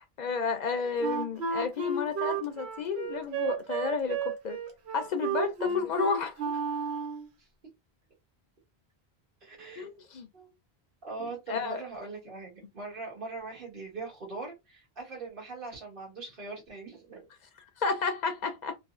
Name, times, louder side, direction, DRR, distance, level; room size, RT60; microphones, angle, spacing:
voice 1, 0.0-4.6 4.9-6.6 9.8-10.3 11.2-11.8 17.8-18.7, left 5 dB, 55° left, 0.5 m, -32 dB
voice 2, 0.7-1.1 5.6-5.8 7.4-7.5 9.4-10.1 10.3-10.5 11.0-17.3, right 3 dB, 60° right, 1.6 m, -41 dB
Wind instrument woodwind instrument, 1.0-7.3, right 4 dB, 90° right, 1.0 m, -32 dB
3.2 x 2.0 x 2.4 m
omnidirectional pair, 1.1 m